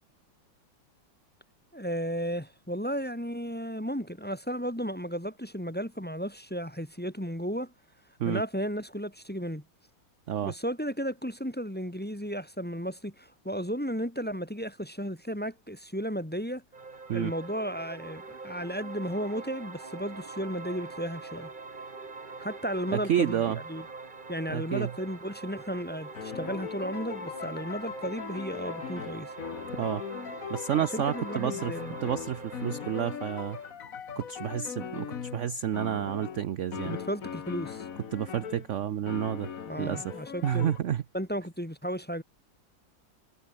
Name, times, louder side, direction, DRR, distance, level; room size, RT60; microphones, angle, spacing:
voice 1, 1.7-7.7 8.3-9.6 10.4-16.6 17.1-21.5 22.4-23.9 24.3-29.3 30.8-32.0 36.8-37.9 39.7-40.7 41.1-42.2, equal, 5° left, 1.8 m, -34 dB
sound 1, 16.7-33.7, right 3 dB, 25° right, 1.8 m, -43 dB
voice 2, 22.9-23.6 24.5-24.9 29.8-30.0 30.5-31.7 32.0-33.6 34.2-37.0 38.1-39.5 39.8-40.1 40.4-41.0, right 10 dB, 60° right, 0.7 m, -30 dB
sound 2, 25.5-38.7 39.1-40.8, left 7 dB, 50° left, 1.6 m, -40 dB
omnidirectional pair, 2.1 m